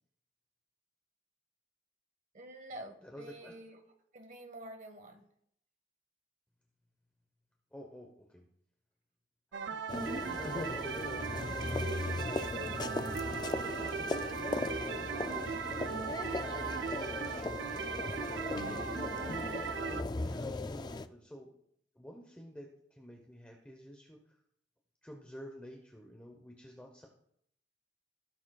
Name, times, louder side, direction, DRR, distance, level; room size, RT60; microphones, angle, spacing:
voice 1, 2.3-3.9 4.1-5.3, right 1 dB, 45° right, 5 dB, 1.4 m, -48 dB
voice 2, 3.0-3.5 7.7-8.5 9.6-11.9 12.4-13.3 13.8-14.2 14.8-16.3 16.7-17.6 18.3-19.1 19.8-21.5 21.9-24.4 25.0-27.1, equal, 5° left, 1 dB, 0.9 m, -51 dB
sound 1, 9.5-20.0, right 6 dB, 60° right, 0.5 m, -38 dB
sound 2, 9.9-21.1, left 2 dB, 20° left, 0.3 m, -38 dB
17.0 x 7.0 x 2.4 m, 0.70 s
head